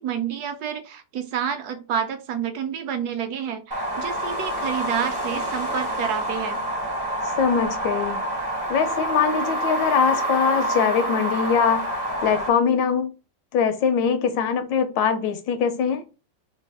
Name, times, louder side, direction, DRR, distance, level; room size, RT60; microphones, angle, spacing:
voice 1, 0.0-6.6, right 8 dB, 70° right, 1.0 m, -29 dB
sound 1, 3.7-12.5, right 1 dB, 30° right, 0.4 m, -27 dB
voice 2, 7.4-8.2 8.7-11.9 12.2-13.1 13.5-16.0, left 6 dB, 85° left, 1.3 m, -22 dB
3.4 x 2.3 x 3.3 m
omnidirectional pair, 2.0 m